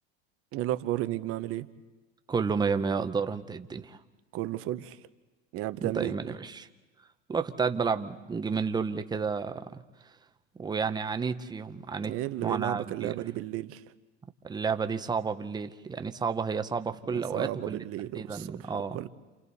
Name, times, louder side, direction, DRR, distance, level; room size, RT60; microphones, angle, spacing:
voice 1, 0.5-1.7 4.3-5.0 5.5-6.1 12.0-13.8 17.1-19.1, right 15 dB, 45° right, 12 dB, 0.9 m, -33 dB
voice 2, 2.3-4.0 5.8-6.7 7.3-9.8 10.6-13.2 14.4-17.8 18.1-19.0, right 5 dB, 15° right, 9 dB, 0.8 m, -31 dB
29.5 x 28.5 x 4.2 m, 1.2 s
supercardioid pair, 135°, 33 cm